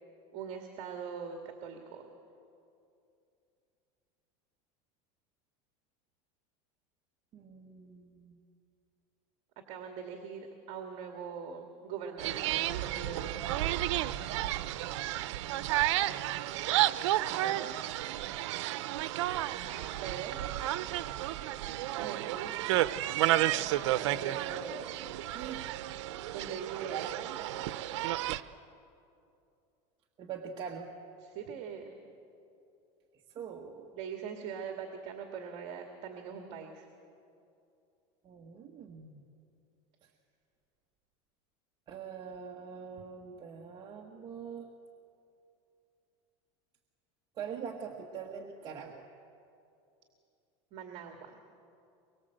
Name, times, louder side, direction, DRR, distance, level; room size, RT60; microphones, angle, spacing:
voice 1, 0.3-2.1 9.7-13.7 19.5-20.4 22.0-22.7 26.3-27.7 31.2-31.9 33.9-36.9 50.7-51.4, right 6 dB, 50° right, 3 dB, 2.2 m, -42 dB
voice 2, 7.3-8.4 17.3-17.8 19.9-20.0 24.0-25.0 25.2-25.7 30.2-30.9 33.1-33.9 38.2-39.2 40.0-40.1 41.9-44.7 47.4-49.1, right 6 dB, 30° right, 0 dB, 1.5 m, -43 dB
sound 1, 12.2-28.4, right 14 dB, 90° right, 0.7 m, -32 dB
24.5 x 23.0 x 7.9 m, 2.7 s
supercardioid pair, 155°, 15 cm